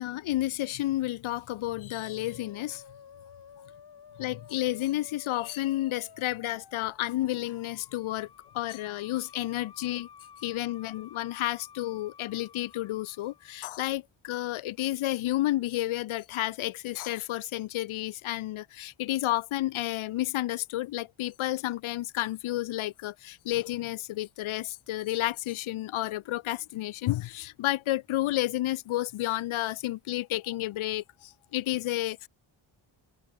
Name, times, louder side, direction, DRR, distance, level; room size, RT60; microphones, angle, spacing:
voice 1, 0.0-2.8 4.2-8.3 8.5-10.1 10.4-32.3, left 15 dB, 80° left, 0.6 m, -31 dB
Musical instrument, 2.0-13.8, left 7 dB, 55° left, 2.4 m, -53 dB
open air
wide cardioid pair, 120°, 47 cm